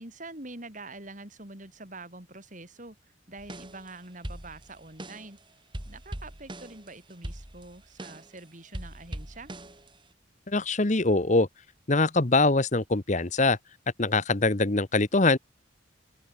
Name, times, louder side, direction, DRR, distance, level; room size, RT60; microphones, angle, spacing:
voice 1, 0.0-5.4 5.9-9.5, right 2 dB, 40° right, 5.5 m, -45 dB
sound 1, 3.4-3.9 4.2-5.4 5.7-8.4 8.7-10.1, right 1 dB, 25° right, 3.0 m, -41 dB
voice 2, 10.5-11.5 11.9-13.6 14.0-15.4, left 3 dB, 40° left, 1.1 m, -23 dB
open air
head